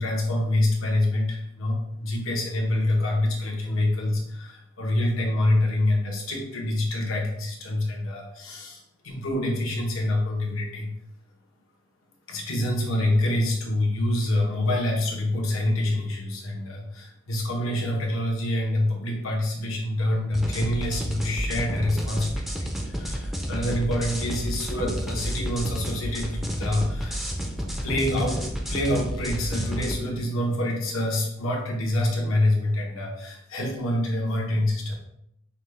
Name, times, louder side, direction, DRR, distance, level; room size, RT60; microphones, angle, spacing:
voice 1, 0.0-10.9 12.3-22.4 22.8-27.2 27.8-28.4 28.7-34.9, left 1 dB, 75° left, -1 dB, 1.1 m, -26 dB
sound 1, 20.3-29.9, equal, ahead, 0.4 m, -31 dB
5.5 x 2.3 x 3.3 m, 0.78 s
head